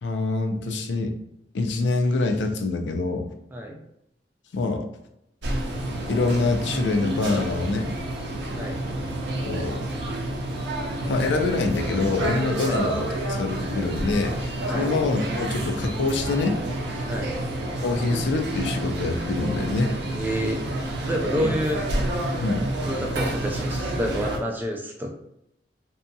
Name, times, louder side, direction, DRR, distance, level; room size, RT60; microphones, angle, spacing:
voice 1, 0.0-1.1 1.5-3.3 4.5-4.9 6.1-7.9 9.4-9.9 11.0-16.6 17.8-20.0 21.4-21.5 22.4-22.7, left 3 dB, 85° left, 5 dB, 0.4 m, -25 dB
sound 1, 5.4-24.4, right 1 dB, 70° right, 0.5 m, -29 dB
voice 2, 20.1-20.7 21.0-21.8 22.9-25.1, equal, 10° right, 1 dB, 0.3 m, -29 dB
2.7 x 2.6 x 2.2 m, 0.81 s
head